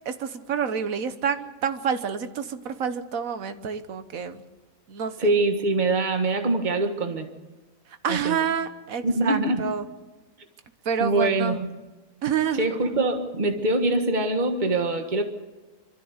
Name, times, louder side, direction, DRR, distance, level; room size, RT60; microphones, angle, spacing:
voice 1, 0.0-4.4 4.9-5.3 8.0-9.8 10.8-11.6 12.2-12.7, right 7 dB, 75° right, 10 dB, 1.5 m, -28 dB
voice 2, 5.2-7.3 8.1-8.4 9.0-9.7 11.0-11.7 12.6-15.2, right 2 dB, 35° right, 5 dB, 1.7 m, -24 dB
25.5 x 13.5 x 8.1 m, 1.2 s
omnidirectional pair, 1.5 m